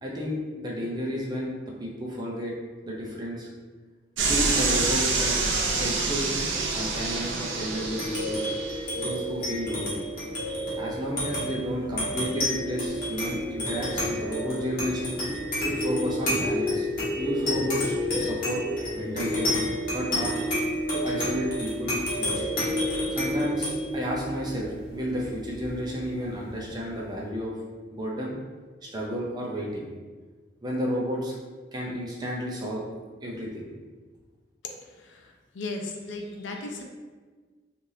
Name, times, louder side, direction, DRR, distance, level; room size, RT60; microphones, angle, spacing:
voice 1, 0.0-2.5 2.8-3.5 4.3-5.4 5.7-6.3 6.7-8.4 9.0-10.1 10.8-15.2 15.6-16.9 17.1-18.6 18.9-19.5 19.9-20.3 20.9-22.5 23.1-27.6 27.9-28.4 28.8-29.9 30.6-31.3 31.7-32.8 33.2-33.7, equal, 20° right, -3 dB, 0.5 m, -32 dB
sound 1, 4.2-8.8, right 3 dB, 80° right, 0.5 m, -26 dB
sound 2, 7.8-26.6, left 1 dB, 50° left, 1.1 m, -30 dB
voice 2, 35.5-36.8, left 2 dB, 80° left, 2 dB, 0.5 m, -35 dB
3.2 x 2.5 x 2.7 m, 1.4 s
head